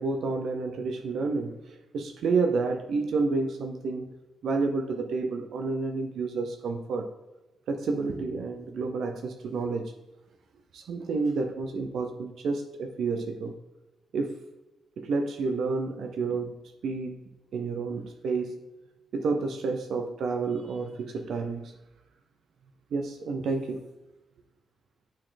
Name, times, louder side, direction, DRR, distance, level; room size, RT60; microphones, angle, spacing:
voice 1, 0.0-4.1 4.4-7.1 7.7-9.9 10.7-13.5 14.1-14.4 15.0-17.2 17.5-18.6 19.1-21.8 22.9-23.9, right 4 dB, 65° right, 5 dB, 0.7 m, -30 dB
9.0 x 4.3 x 3.9 m, 1.0 s
wide cardioid pair, 170°, 0 cm